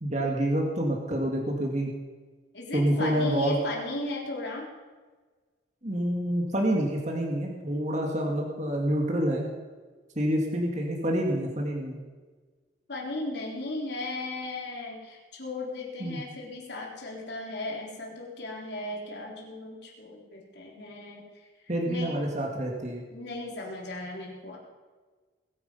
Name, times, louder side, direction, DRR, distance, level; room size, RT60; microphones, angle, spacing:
voice 1, 0.0-1.9 2.7-3.6 5.8-9.5 10.2-12.0 16.0-16.2 21.7-23.0, right 1 dB, 35° right, 0 dB, 2.0 m, -27 dB
voice 2, 2.5-4.7 12.9-21.2 21.9-22.2 23.1-24.6, left 2 dB, 60° left, -2 dB, 3.8 m, -36 dB
21.0 x 9.5 x 5.6 m, 1.4 s
head